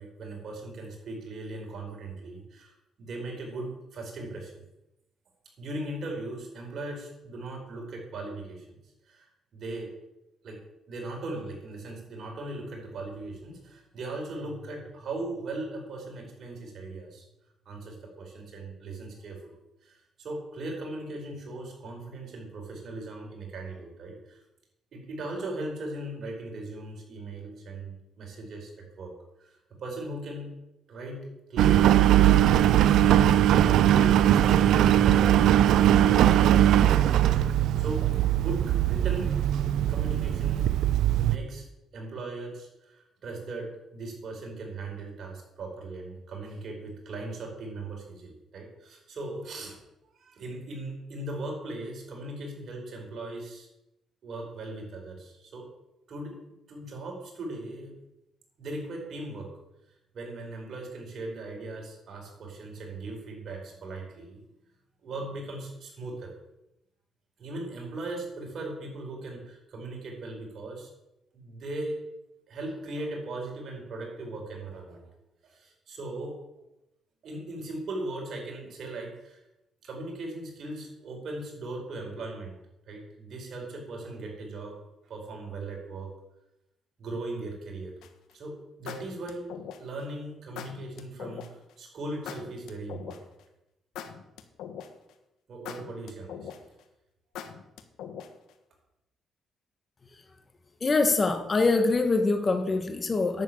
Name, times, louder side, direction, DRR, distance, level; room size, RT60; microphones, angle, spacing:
voice 1, 0.0-4.5 5.6-8.8 9.1-9.9 10.4-10.6 10.9-17.2 17.6-19.6 19.8-24.4 24.9-29.1 29.4-30.5 30.9-32.2 32.6-33.5 33.8-39.3 39.9-40.7 41.2-41.6 41.9-49.8 50.2-53.7 54.2-55.7 56.1-56.4 56.7-58.0 58.6-59.5 60.1-64.4 65.0-66.3 67.4-70.9 71.3-72.0 72.5-75.1 75.4-76.4 77.2-79.4 79.8-82.6 82.9-84.8 85.0-86.1 87.0-87.9 88.3-89.5 89.8-93.2 95.5-96.5, right 2 dB, 60° right, 0 dB, 4.9 m, -38 dB
Engine, 31.6-41.4, right 11 dB, 80° right, 0.5 m, -20 dB
sound 1, 88.0-88.3 88.9-90.0 90.6-91.5 92.3-93.4 94.0-95.1 95.7-96.8 97.4-98.5, left 8 dB, 85° left, 1.3 m, -41 dB
voice 2, 100.8-103.4, left 3 dB, 35° left, 7 dB, 1.7 m, -24 dB
11.0 x 7.3 x 8.8 m, 0.92 s
cardioid pair, 90°, 0 cm